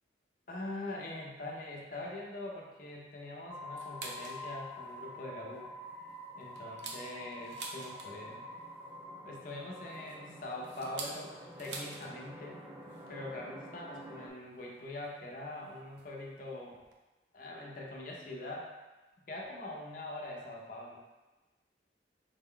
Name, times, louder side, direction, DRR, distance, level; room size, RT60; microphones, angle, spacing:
voice 1, 0.5-5.7 6.4-8.4 9.2-11.3 11.6-12.6 13.1-16.8 17.3-18.7 19.3-21.0, left 2 dB, 50° left, -2 dB, 0.7 m, -43 dB
sound 1, 3.5-14.3, equal, 15° right, 0.4 m, -47 dB
sound 2, 3.8-4.4 4.9-5.0 5.4-5.6 6.1-8.4 9.6-12.1 12.4-12.5 12.8-13.1 14.0-14.1 15.0-15.1 16.0-16.1 16.5-16.6 16.7-16.9, right 4 dB, 75° right, 0.5 m, -46 dB
4.9 x 2.3 x 3.7 m, 1.2 s
head